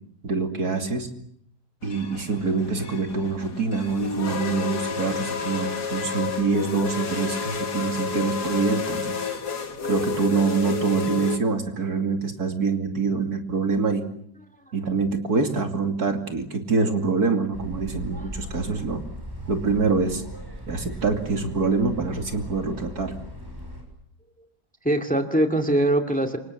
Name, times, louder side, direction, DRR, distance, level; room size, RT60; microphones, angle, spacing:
voice 1, 0.2-1.1 1.8-9.2 9.9-14.1 14.7-19.0 19.5-20.2 20.7-23.1, right 4 dB, 65° right, 5 dB, 3.2 m, -25 dB
sound 1, 1.8-11.4, left 5 dB, 75° left, 2.6 m, -30 dB
sound 2, 17.5-23.8, right 1 dB, 15° right, 6.8 m, -38 dB
voice 2, 24.8-26.4, right 1 dB, 5° left, 5 dB, 2.2 m, -23 dB
28.5 x 25.5 x 7.1 m, 0.68 s
omnidirectional pair, 1.7 m